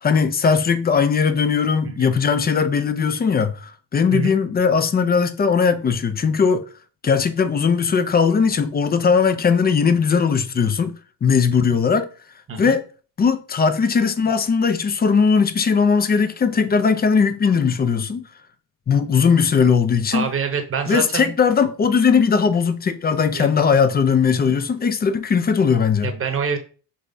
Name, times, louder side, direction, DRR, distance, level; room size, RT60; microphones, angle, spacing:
voice 1, 0.0-6.6 7.0-10.9 11.2-12.1 12.6-12.8 13.2-18.2 18.9-20.3 20.9-26.1, left 6 dB, 20° left, 0.4 m, -19 dB
voice 2, 20.1-21.3 23.3-23.5 26.0-26.6, right 6 dB, 25° right, 0.9 m, -26 dB
5.4 x 3.3 x 2.6 m
supercardioid pair, 90°, 48 cm